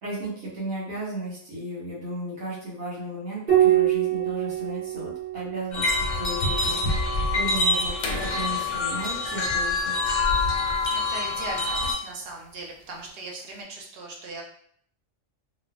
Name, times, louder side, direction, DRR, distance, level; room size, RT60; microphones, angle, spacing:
voice 1, 0.0-7.1 7.3-9.9, right 1 dB, 80° right, -6 dB, 1.6 m, -35 dB
Piano, 3.5-8.3 10.0-10.8, right 12 dB, 30° right, 1.5 m, -27 dB
sound 1, 5.7-11.9, left 3 dB, 55° left, 0.5 m, -25 dB
sound 2, 8.0-13.6, left 3 dB, 90° left, 1.1 m, -40 dB
voice 2, 10.9-14.4, right 2 dB, 55° right, 0 dB, 0.7 m, -38 dB
3.1 x 2.1 x 2.3 m, 0.63 s
omnidirectional pair, 1.4 m